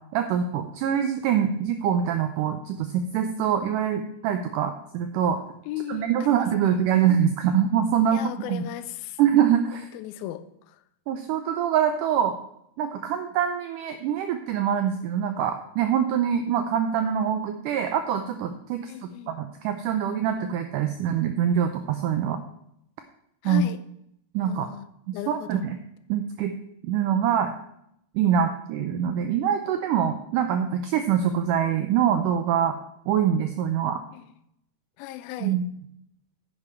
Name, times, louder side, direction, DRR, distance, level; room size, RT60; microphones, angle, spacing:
voice 1, 0.1-5.4 5.9-8.2 8.5-8.7 9.2-9.9 11.1-12.3 12.8-18.9 19.3-22.4 23.5-23.6 24.3-24.7 25.3-25.8 26.1-26.5 26.8-27.5 28.2-32.8 33.1-34.0 35.4-35.6, right 9 dB, 85° right, 7 dB, 1.8 m, -24 dB
voice 2, 5.7-6.8 8.1-9.2 9.7-10.8 18.9-19.4 23.4-23.8 24.4-24.9 25.1-25.7 34.1-34.3 35.0-35.6, left 13 dB, 80° left, 12 dB, 2.4 m, -37 dB
9.9 x 9.8 x 4.4 m, 0.75 s
omnidirectional pair, 4.5 m